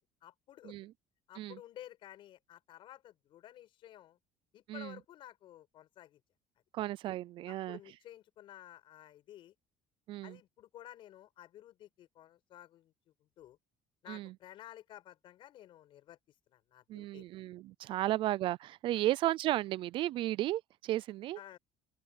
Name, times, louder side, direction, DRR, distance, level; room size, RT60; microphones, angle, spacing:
voice 1, 0.2-0.8 1.3-4.2 4.5-6.2 7.5-9.5 10.2-12.9 13.2-13.6 14.0-16.2 16.5-17.3 21.4-21.6, left 12 dB, 50° left, 6.0 m, -53 dB
voice 2, 6.7-7.8 10.1-10.4 14.1-14.3 16.9-21.4, right 15 dB, 50° right, 0.4 m, -34 dB
open air
cardioid pair, 165°, 11 cm